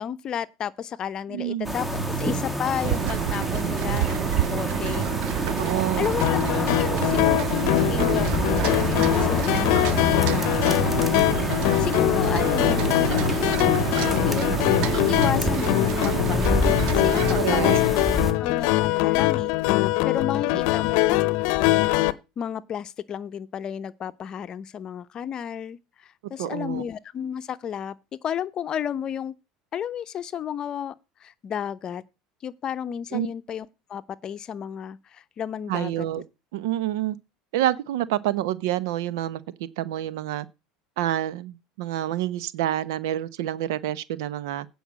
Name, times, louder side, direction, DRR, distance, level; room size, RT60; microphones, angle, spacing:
voice 1, 0.0-1.9 2.2-5.1 6.0-6.2 6.7-10.9 11.8-16.6 16.9-17.8 18.4-19.5 20.0-21.2 22.4-27.9 28.2-29.3 29.7-30.9 31.2-32.0 32.4-36.1, left 9 dB, 40° left, 0.8 m, -32 dB
voice 2, 1.3-1.8 5.6-6.1 17.4-17.8 26.4-26.8 33.1-33.3 35.7-36.2 36.5-37.2 37.5-39.4 39.8-40.5 41.0-44.7, right 13 dB, 85° right, 0.9 m, -27 dB
sound 1, 1.6-18.3, equal, 5° right, 1.7 m, -28 dB
sound 2, 2.8-17.4, right 15 dB, 65° right, 0.5 m, -29 dB
sound 3, 6.2-22.1, left 18 dB, 70° left, 0.7 m, -23 dB
8.8 x 5.5 x 7.4 m
supercardioid pair, 115°, 2 cm